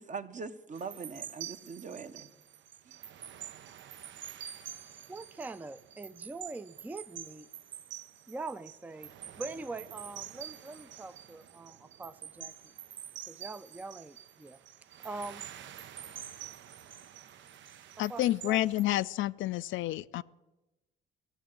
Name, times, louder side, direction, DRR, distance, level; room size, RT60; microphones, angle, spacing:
voice 1, 0.0-2.3 2.9-3.0, right 5 dB, 40° right, 0.9 m, -42 dB
sound 1, 0.7-18.8, right 10 dB, 70° right, 0.6 m, -47 dB
voice 2, 5.1-7.5 8.3-9.1 9.4-12.7 13.3-14.6 15.0-15.5 18.1-18.6, right 3 dB, 10° right, 0.4 m, -43 dB
voice 3, 18.0-20.2, left 15 dB, 75° left, 0.4 m, -29 dB
15.0 x 7.6 x 8.8 m
cardioid pair, 90°, 20 cm